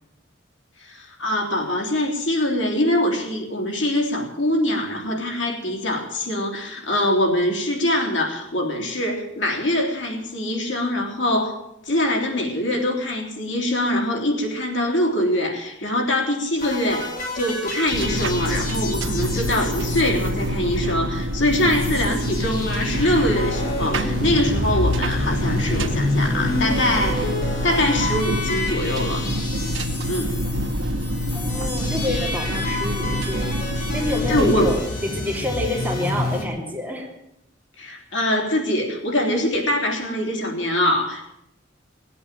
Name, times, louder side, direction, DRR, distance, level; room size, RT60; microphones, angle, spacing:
voice 1, 0.8-11.5 11.8-27.3 27.6-29.3 30.1-30.4 34.3-34.7 37.8-41.3, left 1 dB, 75° left, 0 dB, 3.5 m, -23 dB
sound 1, 16.6-21.0 21.3-21.4 21.5-36.5, left 2 dB, 45° left, 3.4 m, -29 dB
sound 2, 17.9-34.8, equal, 80° right, 1.2 m, -26 dB
voice 2, 31.3-37.1, left 1 dB, 10° right, -1 dB, 3.1 m, -28 dB
18.5 x 8.6 x 9.1 m, 0.82 s
head